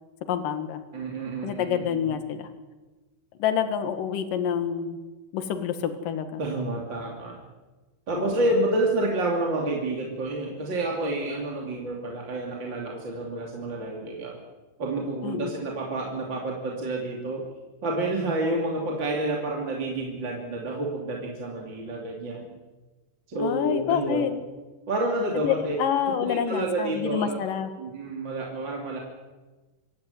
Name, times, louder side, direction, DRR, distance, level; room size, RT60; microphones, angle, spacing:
voice 1, 0.3-0.8 1.4-2.5 3.4-5.0 5.3-6.4 8.1-8.4 15.2-15.6 23.4-24.3 25.3-27.7, left 8 dB, 70° left, 8 dB, 3.2 m, -27 dB
voice 2, 0.9-2.1 6.4-7.4 8.1-14.4 14.8-17.5 17.8-22.6 23.3-24.3 24.9-25.8 26.2-27.5 27.8-29.0, right 2 dB, 35° right, -1 dB, 3.2 m, -29 dB
26.5 x 14.5 x 9.4 m, 1.2 s
omnidirectional pair, 4.1 m